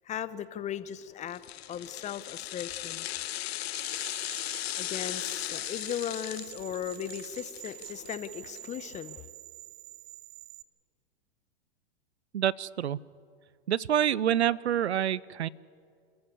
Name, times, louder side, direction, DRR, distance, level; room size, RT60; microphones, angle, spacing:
voice 1, 0.0-3.1 4.8-9.3, left 9 dB, 20° left, 15 dB, 0.8 m, -37 dB
sound 1, 1.3-8.6 8.9-9.0, left 15 dB, 70° left, 0.5 m, -37 dB
sound 2, 3.7-10.6, right 17 dB, 45° right, 0.8 m, -47 dB
voice 2, 12.3-13.0 13.7-15.5, right 10 dB, 85° right, 23 dB, 0.6 m, -27 dB
29.0 x 13.5 x 8.2 m, 2.3 s
hypercardioid pair, 110°, 32 cm